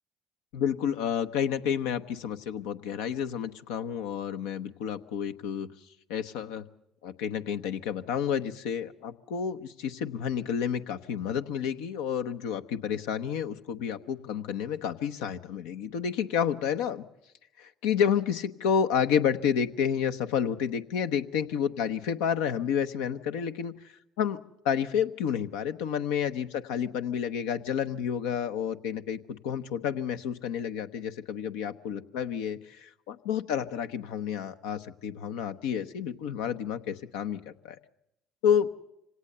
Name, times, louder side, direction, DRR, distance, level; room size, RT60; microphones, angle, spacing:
voice 1, 0.5-5.7 6.1-6.6 7.0-17.0 17.6-23.7 24.2-24.4 24.6-37.8 38.4-38.7, left 8 dB, 80° left, 8 dB, 0.9 m, -30 dB
25.5 x 18.0 x 6.8 m, 0.86 s
hypercardioid pair, 65°, 0 cm